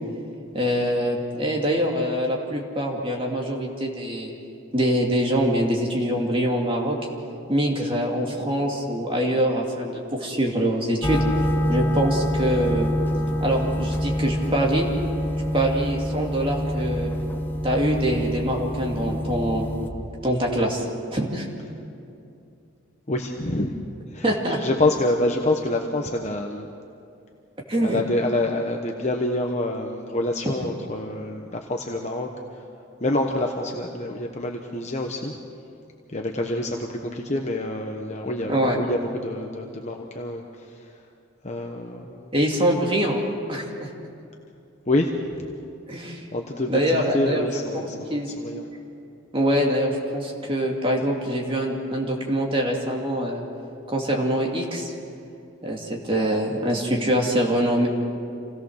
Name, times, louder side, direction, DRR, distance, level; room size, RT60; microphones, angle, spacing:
voice 1, 0.5-4.3 4.7-7.0 7.5-11.2 11.7-12.9 13.4-14.9 15.5-17.1 17.6-19.7 20.2-20.8 21.1-21.5 24.2-24.6 27.7-28.0 38.5-38.8 42.3-43.2 43.5-43.9 45.9-46.2 46.7-47.5 48.1-48.3 49.3-53.4 53.9-54.9 55.6-57.9, equal, 25° right, -1 dB, 2.5 m, -24 dB
sound 1, 11.0-19.9, equal, 10° left, 0.9 m, -26 dB
voice 2, 23.1-23.8 24.1-26.7 27.8-32.6 33.0-35.3 36.1-40.9 41.4-42.3 44.9-45.5 46.3-48.7, left 1 dB, 35° left, 2 dB, 1.1 m, -27 dB
27.0 x 17.5 x 6.5 m, 2.6 s
head